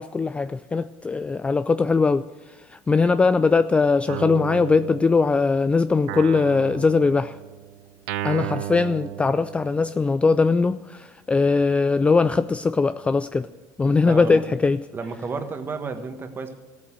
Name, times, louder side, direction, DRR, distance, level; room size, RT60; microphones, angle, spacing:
voice 1, 0.0-7.4 8.2-13.5 13.8-14.8, left 4 dB, 15° left, 12 dB, 0.3 m, -21 dB
Guitar, 4.1-5.6 6.1-10.0, right 13 dB, 80° right, 0.6 m, -34 dB
voice 2, 13.9-14.4 14.9-16.5, right 4 dB, 25° right, 8 dB, 1.5 m, -32 dB
14.5 x 8.5 x 7.5 m, 1.2 s
supercardioid pair, 120°, 8 cm